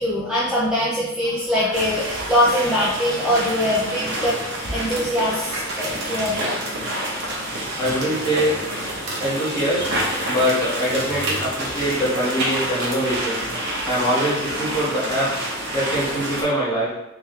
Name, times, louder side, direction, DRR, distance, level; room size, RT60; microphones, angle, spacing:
voice 1, 0.0-4.4 4.7-7.0 7.6-7.8 9.1-9.2 12.5-12.6 15.7-15.9, left 1 dB, 5° right, -8 dB, 0.5 m, -23 dB
sound 1, 1.7-16.4, right 1 dB, 55° right, 0.9 m, -28 dB
voice 2, 7.8-8.5 9.2-9.8 10.3-13.4 13.9-16.9, equal, 20° left, -8 dB, 1.4 m, -23 dB
3.5 x 3.1 x 3.2 m, 0.99 s
head